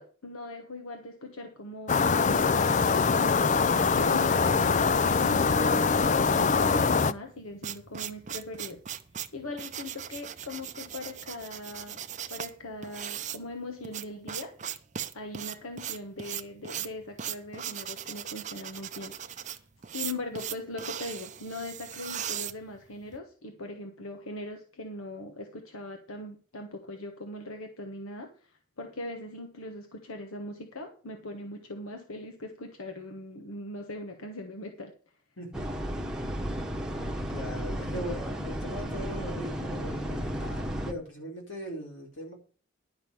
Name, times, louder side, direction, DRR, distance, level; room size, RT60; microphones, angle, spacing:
voice 1, 0.0-3.6 3.9-8.8 9.3-12.0 12.3-14.5 15.1-19.6 19.9-34.9, left 1 dB, 90° left, 4 dB, 1.4 m, -40 dB
sound 1, 1.9-7.1, left 5 dB, 35° left, 0.4 m, -23 dB
sound 2, 7.2-23.2, right 10 dB, 35° right, 0.6 m, -38 dB
voice 2, 35.4-35.8 37.3-42.3, equal, 60° left, 0 dB, 4.2 m, -40 dB
sound 3, 35.5-40.9, equal, 5° right, 1.1 m, -33 dB
11.0 x 6.0 x 6.9 m, 0.40 s
head